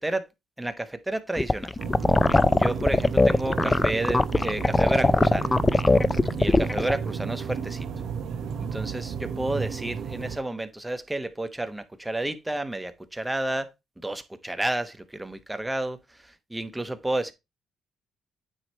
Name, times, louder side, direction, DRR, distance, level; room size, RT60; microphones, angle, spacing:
voice 1, 0.6-1.8 2.6-5.5 6.4-7.9 8.6-13.7 14.0-17.3, right 1 dB, 10° right, 0.9 m, -31 dB
sound 1, 1.4-6.9, left 2 dB, 20° left, 0.4 m, -20 dB
sound 2, 1.8-10.4, right 6 dB, 75° right, 1.0 m, -33 dB
9.1 x 3.2 x 4.4 m
cardioid pair, 90°, 0 cm